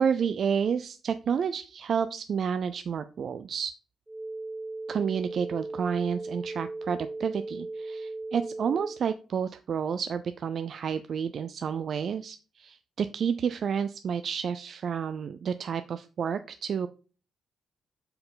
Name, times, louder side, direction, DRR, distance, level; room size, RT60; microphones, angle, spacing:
voice 1, 0.0-3.7 4.9-16.9, right 7 dB, 60° right, 11 dB, 0.4 m, -30 dB
sound 1, 4.1-9.0, right 2 dB, 15° right, 0.6 m, -37 dB
5.4 x 4.5 x 5.6 m, 0.37 s
cardioid pair, 90°, 0 cm